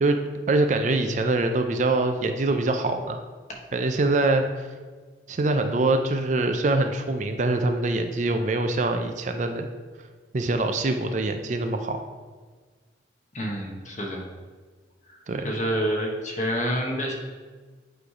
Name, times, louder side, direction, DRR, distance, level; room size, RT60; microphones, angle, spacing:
voice 1, 0.0-3.2 3.7-4.7 5.3-9.7 10.3-12.0 15.3-15.5, right 2 dB, 40° right, 6 dB, 0.4 m, -24 dB
voice 2, 13.3-14.2 15.1-15.2 15.4-17.1, equal, 45° left, -1 dB, 1.2 m, -28 dB
8.3 x 3.2 x 4.9 m, 1.4 s
head